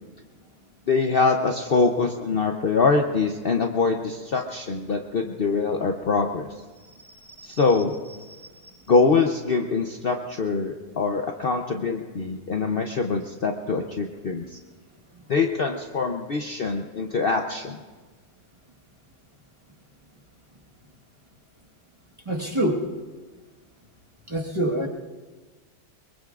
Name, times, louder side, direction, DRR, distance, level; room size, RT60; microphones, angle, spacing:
voice 1, 0.9-6.5 7.4-8.0 8.9-14.6 15.3-17.8, left 4 dB, 50° left, 3 dB, 0.8 m, -24 dB
voice 2, 7.0-7.6 8.7-8.8 22.2-22.9 24.3-24.9, right 1 dB, 20° right, -1 dB, 1.4 m, -27 dB
23.5 x 22.5 x 2.5 m, 1.3 s
omnidirectional pair, 1.6 m